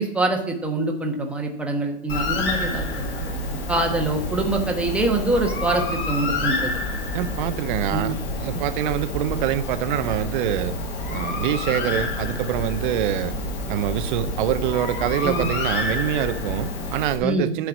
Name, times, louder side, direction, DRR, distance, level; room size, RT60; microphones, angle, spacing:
voice 1, 0.0-2.9 3.3-6.8 7.9-8.2 8.5-8.6 15.2-15.5 17.2-17.5, right 2 dB, 5° right, 1 dB, 1.2 m, -25 dB
Bird, 2.1-17.2, left 2 dB, 30° left, 2.3 m, -28 dB
voice 2, 7.1-8.1 8.4-10.8 11.1-13.4 13.7-17.7, right 11 dB, 45° right, 13 dB, 0.7 m, -25 dB
9.4 x 4.8 x 7.1 m, 0.72 s
hypercardioid pair, 135°, 36 cm